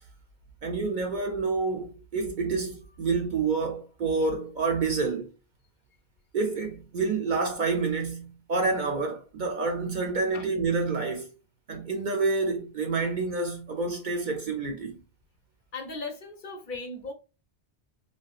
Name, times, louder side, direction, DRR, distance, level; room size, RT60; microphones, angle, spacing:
voice 1, 0.6-5.3 6.3-11.3 11.7-15.0, right 4 dB, 55° right, 0.6 m, -28 dB
voice 2, 15.7-17.1, left 3 dB, 55° left, 0.7 m, -37 dB
3.4 x 2.3 x 2.4 m
omnidirectional pair, 1.1 m